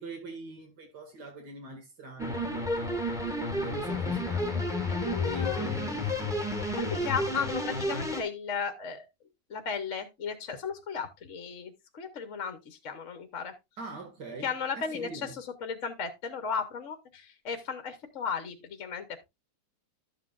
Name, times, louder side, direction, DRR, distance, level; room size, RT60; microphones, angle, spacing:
voice 1, 0.0-2.7 3.2-4.7 5.2-6.5 7.1-7.5 13.8-15.4, right 2 dB, 75° right, 2.6 m, -43 dB
sound 1, 2.2-8.2, left 1 dB, ahead, 1.8 m, -31 dB
voice 2, 4.9-5.7 6.7-9.0 9.5-13.5 14.4-19.3, left 6 dB, 50° left, 1.2 m, -35 dB
12.0 x 7.5 x 2.4 m
omnidirectional pair, 1.8 m